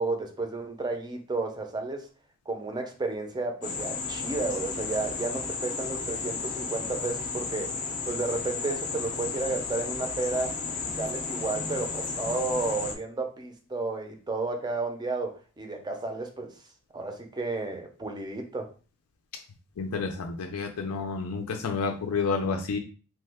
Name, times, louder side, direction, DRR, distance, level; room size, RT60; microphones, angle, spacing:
voice 1, 0.0-2.1 2.5-7.7 8.1-16.5 16.9-18.7, right 3 dB, 20° right, 4 dB, 0.5 m, -32 dB
sound 1, 3.6-12.9, left 4 dB, 35° left, 0.5 m, -33 dB
voice 2, 19.8-22.8, left 4 dB, 90° left, 3 dB, 0.4 m, -30 dB
3.0 x 2.2 x 3.4 m, 0.37 s
head